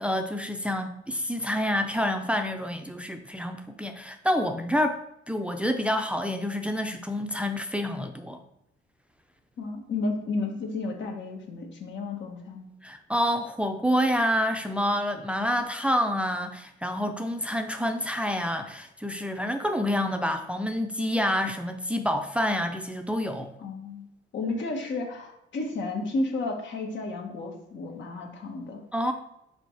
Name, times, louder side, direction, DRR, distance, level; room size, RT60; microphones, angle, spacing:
voice 1, 0.0-5.0 5.3-8.4 12.8-23.5 28.9-29.1, equal, 5° right, 5 dB, 0.6 m, -28 dB
voice 2, 9.6-12.7 23.6-24.0 24.3-28.8, left 3 dB, 65° left, 2 dB, 1.6 m, -32 dB
5.6 x 4.3 x 4.7 m, 0.80 s
cardioid pair, 90°, 20 cm